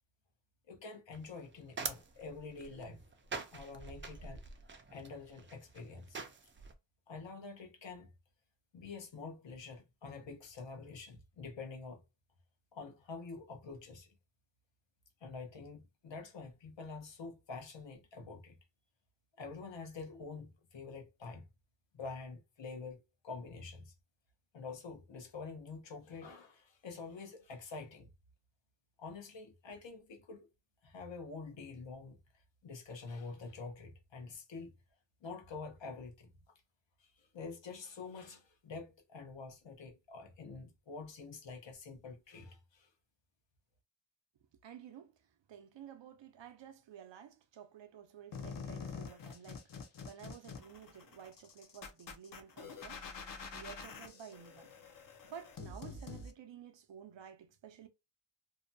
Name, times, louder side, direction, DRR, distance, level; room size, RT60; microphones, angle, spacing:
voice 1, 0.7-3.0 3.5-4.4 4.9-6.2 7.1-8.1 8.7-12.0 12.7-14.1 15.2-18.6 19.4-21.5 21.9-23.0 23.2-23.9 24.5-28.1 29.0-30.5 30.8-32.2 32.6-34.7 35.2-36.3 37.0-42.9, left 4 dB, 75° left, 0.8 m, -47 dB
sound 1, 1.1-6.7, right 4 dB, 30° right, 0.4 m, -45 dB
voice 2, 44.6-45.2 45.5-53.1 53.5-54.7 55.2-57.9, right 8 dB, 75° right, 0.6 m, -52 dB
sound 2, 48.3-56.3, left 5 dB, 50° left, 0.5 m, -47 dB
2.6 x 2.2 x 2.6 m
wide cardioid pair, 125°, 44 cm